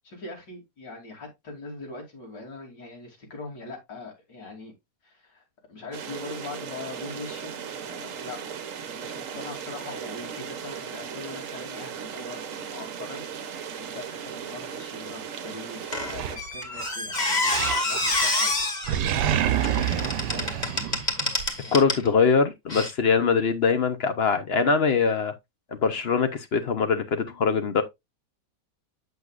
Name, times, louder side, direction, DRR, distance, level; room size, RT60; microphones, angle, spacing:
voice 1, 0.0-4.7 5.0-5.4 5.7-18.5 19.0-20.7 21.6-21.9, left 2 dB, 90° left, 3.5 m, -42 dB
sound 1, 5.9-16.4, right 7 dB, 55° right, 1.1 m, -37 dB
Squeak, 15.9-22.1 22.7-22.9, left 2 dB, 25° left, 1.8 m, -28 dB
Animal, 16.1-17.0 17.5-18.3 18.5-21.5, right 10 dB, 80° right, 1.2 m, -27 dB
voice 2, 21.7-25.3 25.8-27.8, left 5 dB, 50° left, 0.8 m, -22 dB
7.9 x 7.0 x 2.4 m
omnidirectional pair, 1.8 m